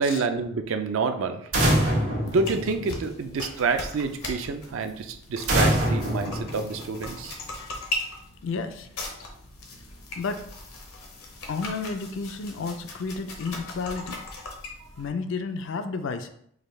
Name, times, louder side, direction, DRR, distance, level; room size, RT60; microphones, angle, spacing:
voice 1, 0.0-1.5 2.2-7.4 14.8-14.9, right 4 dB, 65° right, 7 dB, 0.4 m, -28 dB
sound 1, 1.5-3.3 5.5-7.2, right 1 dB, 80° right, 1.3 m, -25 dB
sound 2, 2.2-15.1, left 2 dB, 75° left, 0.8 m, -39 dB
voice 2, 8.4-8.9 10.2-10.4 11.5-14.2 15.0-16.3, left 4 dB, 55° left, 8 dB, 0.3 m, -31 dB
4.9 x 2.2 x 3.2 m, 0.69 s
head